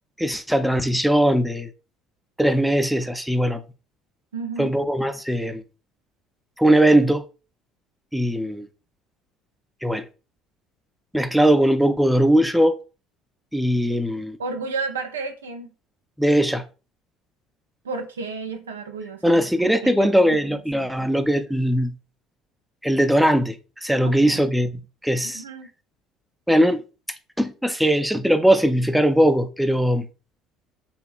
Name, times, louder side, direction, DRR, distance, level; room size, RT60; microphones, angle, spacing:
voice 1, 0.2-1.7 2.4-3.6 4.6-5.6 6.6-7.2 8.1-8.7 9.8-10.0 11.1-12.8 13.5-14.4 16.2-16.7 19.2-21.9 22.8-24.7 25.0-25.4 26.5-26.8 27.4-30.1, right 1 dB, ahead, 0.3 m, -20 dB
voice 2, 4.3-4.8 14.4-15.7 17.8-20.9 24.0-24.5 25.2-25.7, right 4 dB, 85° right, 0.3 m, -33 dB
2.8 x 2.3 x 2.2 m
hypercardioid pair, 60°, 0 cm